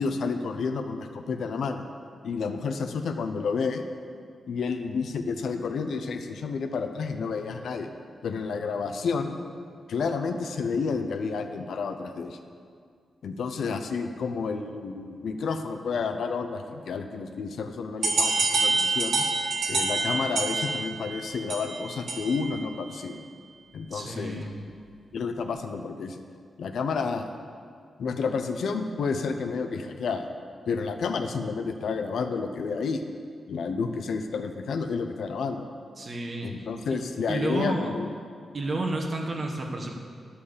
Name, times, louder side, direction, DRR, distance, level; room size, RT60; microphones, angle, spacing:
voice 1, 0.0-1.9 2.2-3.9 4.5-7.9 8.2-9.4 9.9-12.4 13.2-19.2 19.7-23.2 23.7-24.4 25.1-26.2 26.6-27.2 28.0-30.3 30.7-33.0 33.5-35.6 36.4-38.1, left 5 dB, 70° left, 7 dB, 0.6 m, -30 dB
sound 1, 18.0-22.5, right 3 dB, 85° right, 1.5 m, -27 dB
voice 2, 23.9-24.6 36.0-36.7 37.3-37.9 38.5-39.9, right 2 dB, 35° right, 1 dB, 1.1 m, -31 dB
11.5 x 5.6 x 6.7 m, 2.2 s
wide cardioid pair, 175°, 0 cm